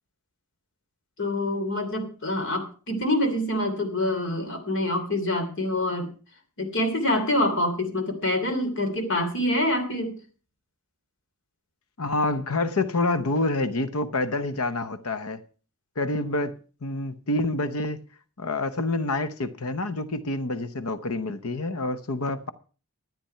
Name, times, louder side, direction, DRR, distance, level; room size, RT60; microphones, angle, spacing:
voice 1, 1.2-6.1 6.6-10.2, left 1 dB, 55° left, 3.0 m, -26 dB
voice 2, 12.0-15.4 16.0-18.0 18.4-22.5, left 2 dB, 75° left, 0.9 m, -27 dB
13.5 x 9.2 x 5.6 m
head